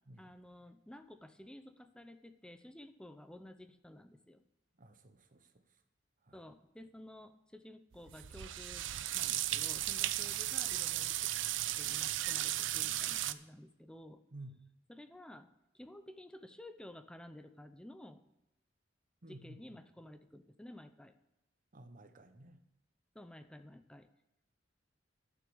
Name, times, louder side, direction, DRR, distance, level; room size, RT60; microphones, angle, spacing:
voice 1, 0.2-4.4 6.3-8.9 9.1-11.2 11.8-14.2 14.9-15.5 15.7-18.2 19.3-21.1 23.1-24.1, left 1 dB, 5° left, 9 dB, 0.5 m, -53 dB
voice 2, 4.8-5.5 6.3-6.4 14.3-14.6 19.2-19.6 21.7-22.6, right 1 dB, 45° right, 9 dB, 1.0 m, -53 dB
sound 1, 7.9-13.3, right 14 dB, 75° right, 0.5 m, -35 dB
11.5 x 6.2 x 7.0 m, 0.92 s
head